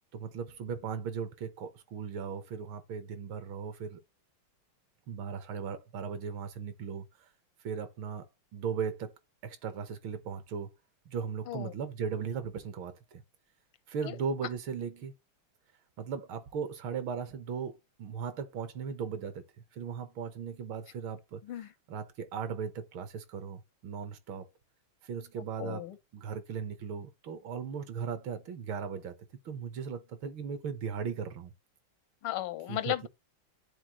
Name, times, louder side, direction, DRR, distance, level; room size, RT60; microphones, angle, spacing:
voice 1, 0.1-4.0 5.1-7.1 7.6-8.3 8.5-9.1 9.4-10.7 11.1-13.2 13.9-15.1 16.0-19.5 19.7-21.4 21.9-24.5 25.0-25.8 26.1-29.1 29.5-31.5 32.7-33.1, right 6 dB, 75° right, 1.8 m, -37 dB
voice 2, 21.4-21.7 25.4-26.0 32.2-33.1, left 14 dB, 90° left, 1.7 m, -36 dB
10.5 x 4.0 x 3.0 m
omnidirectional pair, 2.3 m